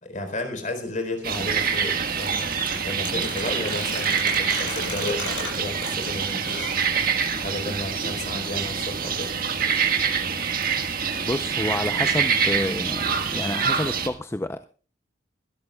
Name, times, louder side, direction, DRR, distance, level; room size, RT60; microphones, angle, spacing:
voice 1, 0.0-9.3, left 1 dB, 45° left, 6 dB, 4.1 m, -33 dB
sound 1, 1.2-14.1, right 6 dB, 50° right, 1.6 m, -26 dB
sound 2, 2.2-7.4, left 4 dB, 75° left, 7.4 m, -36 dB
voice 2, 11.3-14.7, left 1 dB, 15° left, 9 dB, 0.5 m, -29 dB
22.5 x 12.5 x 2.3 m, 0.38 s
head